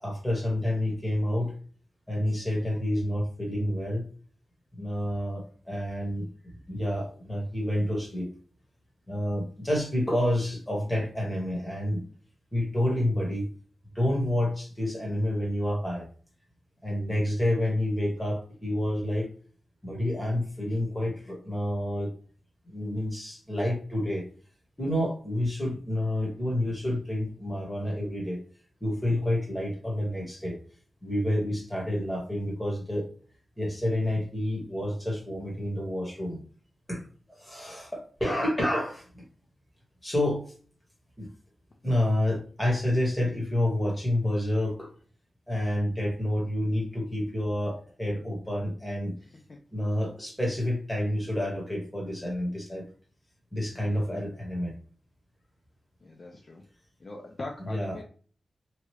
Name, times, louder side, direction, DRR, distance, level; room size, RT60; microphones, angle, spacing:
voice 1, 0.0-1.5 2.1-4.0 4.8-6.3 6.7-8.3 9.1-12.0 12.5-13.4 13.9-16.1 16.8-19.3 19.8-22.1 22.7-24.2 24.8-28.4 28.8-30.6 31.0-33.1 33.6-36.4 36.9-37.0 37.3-39.2 40.0-40.4 41.2-41.3 41.8-44.9 45.5-49.1 49.7-52.8 53.5-54.7 57.6-58.0, left 1 dB, 10° left, -2 dB, 1.3 m, -29 dB
voice 2, 56.0-56.6 57.0-58.0, left 2 dB, 35° left, 1 dB, 0.4 m, -41 dB
3.0 x 2.3 x 3.0 m, 0.41 s
wide cardioid pair, 150°, 0 cm